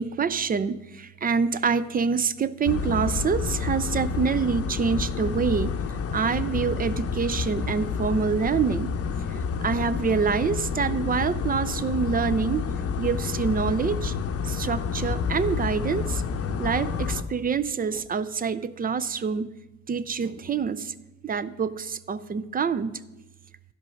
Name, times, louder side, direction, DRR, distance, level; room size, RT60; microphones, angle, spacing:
voice 1, 0.0-5.7 6.1-8.9 9.4-12.7 13.0-14.1 14.4-16.2 16.6-19.5 19.9-20.9 21.2-22.9, right 6 dB, 30° right, 15 dB, 0.4 m, -26 dB
sound 1, 2.7-17.2, left 5 dB, 50° left, 0.7 m, -29 dB
11.5 x 5.3 x 6.3 m, 1.0 s
cardioid pair, 90°, 30 cm